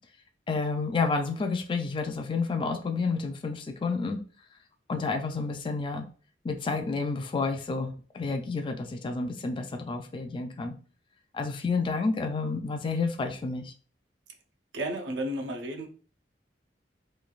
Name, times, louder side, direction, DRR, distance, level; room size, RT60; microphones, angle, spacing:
voice 1, 0.5-4.2 4.9-6.0 6.4-10.7 11.3-13.7, left 4 dB, 25° left, 0.3 m, -30 dB
voice 2, 14.7-15.9, right 1 dB, 75° right, 0.6 m, -32 dB
3.1 x 2.2 x 2.3 m
head